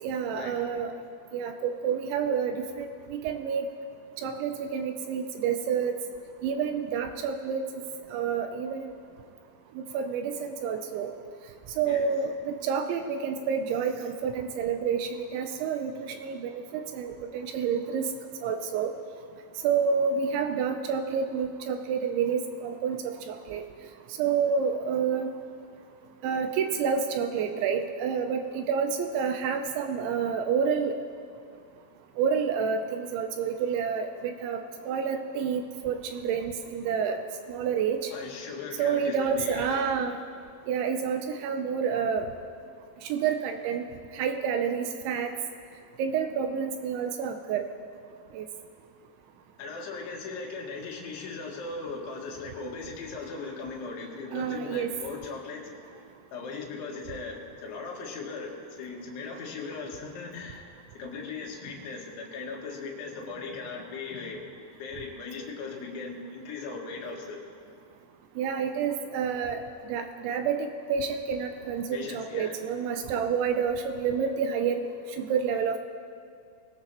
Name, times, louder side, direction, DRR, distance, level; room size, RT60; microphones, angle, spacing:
voice 1, 0.0-0.9 1.3-3.7 4.2-5.9 6.4-7.6 8.1-8.9 9.9-11.1 11.8-18.1 18.4-18.9 19.6-23.6 24.2-25.3 26.2-30.9 32.2-37.2 37.5-38.1 38.8-40.2 40.7-42.3 43.0-43.8 44.1-45.3 46.0-47.7 48.3-48.5 54.3-54.9 68.4-69.6 69.9-74.8 75.2-75.8, right 6 dB, 80° right, 6 dB, 2.8 m, -29 dB
voice 2, 38.1-39.9 49.6-55.6 56.3-58.5 58.8-60.7 61.0-64.5 64.8-67.4 71.9-72.6, left 4 dB, 75° left, -1 dB, 4.0 m, -38 dB
21.0 x 17.5 x 3.0 m, 2.2 s
omnidirectional pair, 5.7 m